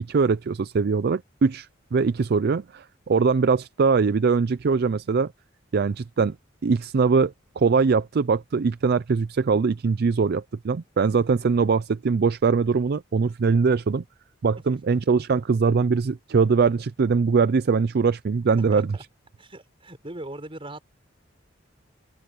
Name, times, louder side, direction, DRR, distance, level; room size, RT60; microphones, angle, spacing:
voice 1, 0.1-5.3 5.7-6.4 6.6-14.0 14.4-18.9, right 5 dB, 55° right, 0.4 m, -22 dB
voice 2, 18.6-19.0 19.4-20.9, right 1 dB, 30° right, 5.6 m, -40 dB
open air
head